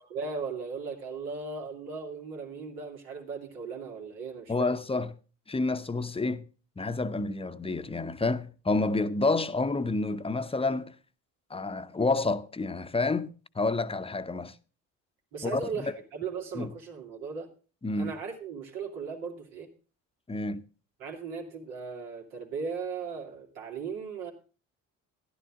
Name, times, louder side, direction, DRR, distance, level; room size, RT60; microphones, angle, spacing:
voice 1, 0.1-4.7 15.3-17.5 18.0-19.7 21.0-24.3, right 5 dB, 80° right, 2.6 m, -37 dB
voice 2, 4.5-5.1 5.5-6.5 6.8-10.9 11.5-14.5 15.4-15.9 16.5-16.7 17.8-18.1 20.3-20.6, left 3 dB, 15° left, 0.8 m, -29 dB
13.5 x 11.5 x 3.6 m
hypercardioid pair, 60°, 38 cm